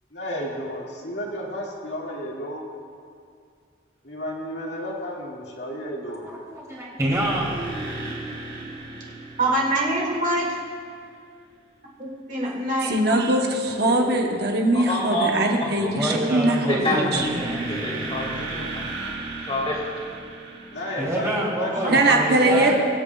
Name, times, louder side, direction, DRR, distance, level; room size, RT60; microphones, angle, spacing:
voice 1, 0.1-2.6 4.0-6.2 20.7-22.7, equal, 70° left, -3 dB, 2.0 m, -32 dB
voice 2, 6.2-7.5 15.9-18.1 21.0-22.7, right 1 dB, 15° right, -5 dB, 2.7 m, -27 dB
sound 1, 7.1-10.8 17.1-21.3, right 2 dB, 80° right, 2.6 m, -35 dB
voice 3, 9.4-10.6 12.0-13.3 13.9-14.1 21.8-22.0 22.5-22.7, right 1 dB, 40° right, -3 dB, 2.0 m, -25 dB
voice 4, 12.8-16.6 16.9-17.4 21.9-22.7, right 2 dB, 55° right, 1 dB, 0.9 m, -21 dB
voice 5, 14.7-15.3 15.8-15.9 16.7-17.2 17.7-18.8 19.4-19.8, left 1 dB, 30° left, -3 dB, 2.2 m, -27 dB
24.0 x 8.6 x 2.3 m, 2.2 s
head